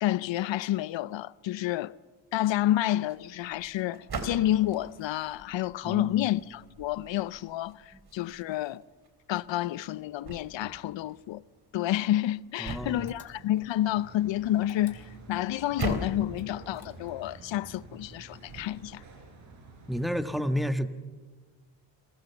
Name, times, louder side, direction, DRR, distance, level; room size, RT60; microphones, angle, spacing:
voice 1, 0.0-1.9 2.3-8.8 9.3-11.4 11.7-19.0, left 14 dB, 70° left, 0.7 m, -29 dB
sound 1, 3.0-19.1, right 3 dB, 50° right, 3.6 m, -43 dB
voice 2, 5.8-6.2 12.6-13.1 19.9-20.9, equal, ahead, 1.5 m, -30 dB
sound 2, 13.1-13.8 14.6-15.5 16.3-17.3, left 6 dB, 50° left, 3.7 m, -53 dB
sound 3, 13.8-20.3, right 3 dB, 75° right, 5.4 m, -49 dB
27.5 x 20.0 x 7.0 m
supercardioid pair, 55°, 47 cm